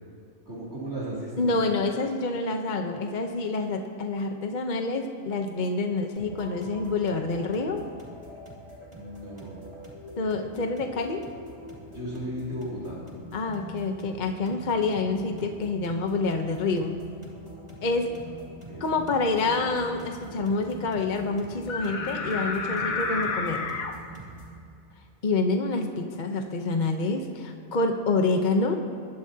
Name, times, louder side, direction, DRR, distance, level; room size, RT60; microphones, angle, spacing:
voice 1, 0.5-1.6 8.9-9.6 11.9-13.0 18.7-18.9, right 1 dB, 50° right, -8 dB, 3.1 m, -35 dB
voice 2, 1.4-7.8 10.2-11.2 13.3-17.0 17.8-18.1 18.8-23.6 25.2-28.8, left 3 dB, 40° left, 4 dB, 0.9 m, -27 dB
sound 1, 6.2-24.6, right 1 dB, 30° right, 2.9 m, -44 dB
sound 2, 21.7-23.9, left 4 dB, 80° left, 1.5 m, -30 dB
21.5 x 12.0 x 2.8 m, 2.5 s
omnidirectional pair, 1.4 m